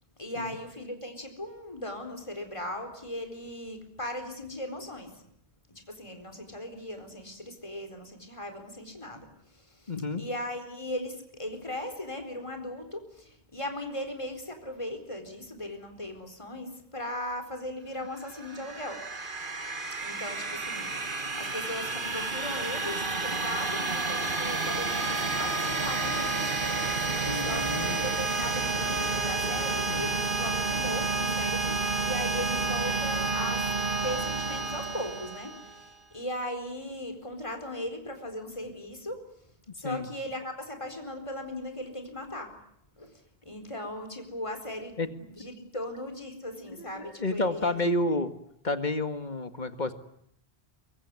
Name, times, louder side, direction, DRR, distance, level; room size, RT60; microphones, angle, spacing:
voice 1, 0.2-5.2 5.9-19.0 20.0-21.0 21.3-27.0 27.3-33.6 34.0-39.2 39.7-42.5 43.0-43.1 43.4-45.0 45.3-47.8, left 1 dB, 30° left, 6 dB, 4.4 m, -38 dB
voice 2, 9.9-10.2 27.2-28.1 29.9-30.1 39.8-40.1 45.0-45.1 46.8-48.3 48.6-49.9, left 2 dB, 45° left, 9 dB, 2.1 m, -30 dB
sound 1, 18.2-35.9, right 3 dB, 50° right, 1.9 m, -30 dB
24.5 x 24.0 x 9.7 m, 0.72 s
omnidirectional pair, 1.1 m